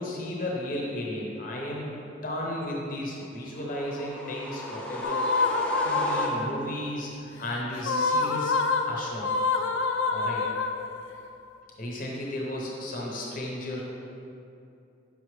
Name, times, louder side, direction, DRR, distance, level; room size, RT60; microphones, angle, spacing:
voice 1, 0.0-5.2 5.8-8.6 8.8-9.3 10.1-10.5 11.8-13.8, left 1 dB, 45° left, -2 dB, 0.7 m, -34 dB
sound 1, 3.6-6.8, equal, 5° left, 0.4 m, -34 dB
sound 2, 5.0-6.7 7.8-11.2, left 3 dB, 80° left, 0.4 m, -27 dB
5.8 x 5.3 x 3.1 m, 2.7 s
head